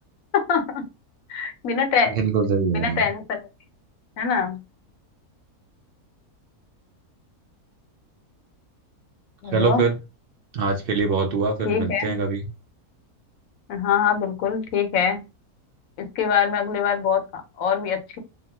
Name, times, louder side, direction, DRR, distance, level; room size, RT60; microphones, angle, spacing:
voice 1, 0.3-0.8 1.3-2.2 2.7-3.5 4.2-4.6 9.4-9.8 11.6-12.1 13.7-15.2 16.0-18.2, left 7 dB, 70° left, 1.0 m, -24 dB
voice 2, 2.1-3.0 9.5-9.9 10.5-12.4, right 5 dB, 70° right, 0.5 m, -23 dB
2.8 x 2.2 x 2.8 m
omnidirectional pair, 1.6 m